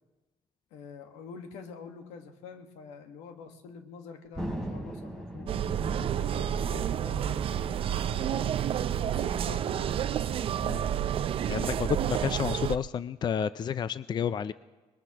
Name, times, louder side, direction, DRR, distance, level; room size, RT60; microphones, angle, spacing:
voice 1, 0.7-5.5 6.0-8.6 9.1-10.2, left 5 dB, 90° left, 6 dB, 1.5 m, -47 dB
Thunder, 4.3-11.2, right 1 dB, 5° left, 3.1 m, -41 dB
sound 1, 5.5-12.8, right 10 dB, 55° right, 0.5 m, -30 dB
voice 2, 11.5-14.5, left 7 dB, 40° left, 15 dB, 0.4 m, -30 dB
21.5 x 21.0 x 3.0 m, 1.2 s
supercardioid pair, 85°, 11 cm